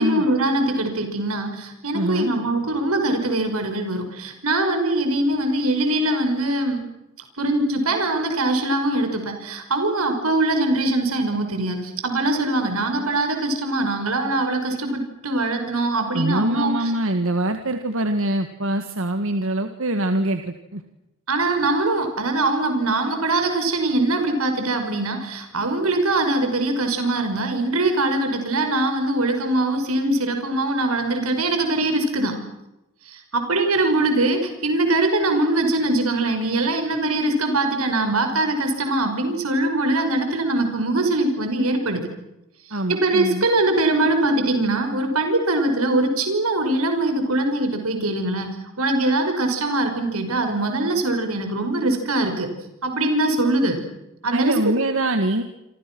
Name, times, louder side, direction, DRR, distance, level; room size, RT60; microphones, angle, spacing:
voice 1, 0.0-6.8 7.4-16.9 21.3-32.3 33.1-42.0 42.7-48.5 48.8-52.5 52.8-53.8 54.2-54.5, right 2 dB, 85° right, 6 dB, 5.6 m, -22 dB
voice 2, 1.9-2.3 16.1-20.8 42.7-43.4 54.3-55.4, right 1 dB, 70° right, 7 dB, 1.9 m, -24 dB
28.0 x 27.0 x 6.2 m, 0.92 s
head